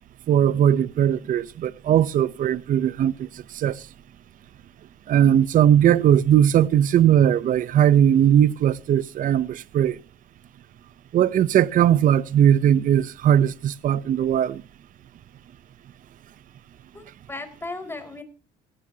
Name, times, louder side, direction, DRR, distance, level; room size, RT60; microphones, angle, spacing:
voice 1, 0.3-3.3 3.5-3.8 5.1-10.0 11.1-14.6, right 10 dB, 50° right, 0.7 m, -19 dB
voice 2, 16.9-18.2, left 2 dB, 15° left, 4.9 m, -36 dB
17.5 x 17.0 x 2.8 m
cardioid pair, 110°, 17 cm